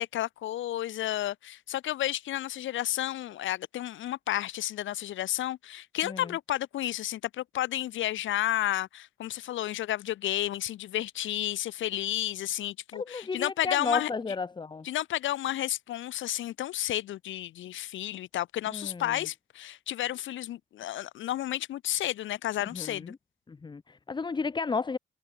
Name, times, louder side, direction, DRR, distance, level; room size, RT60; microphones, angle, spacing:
voice 1, 0.0-14.1 14.8-23.1, left 13 dB, 80° left, 2.0 m, -32 dB
voice 2, 12.9-14.9 18.7-19.2 22.7-23.2 23.5-25.0, left 4 dB, 25° left, 0.8 m, -33 dB
cardioid pair, 90°, 20 cm